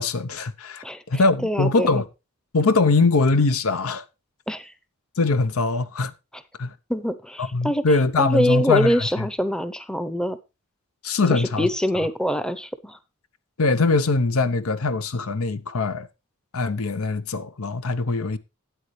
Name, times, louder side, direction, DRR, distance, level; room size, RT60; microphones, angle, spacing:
voice 1, 0.0-2.0 2.5-4.0 5.2-6.1 6.6-6.7 7.4-9.3 11.0-11.7 13.6-16.1 16.5-18.4, left 3 dB, 85° left, 0.8 m, -22 dB
voice 2, 0.8-1.9 4.5-4.7 6.9-7.8 8.2-10.4 11.3-13.0, equal, 5° left, 0.6 m, -24 dB
12.5 x 8.8 x 3.2 m
head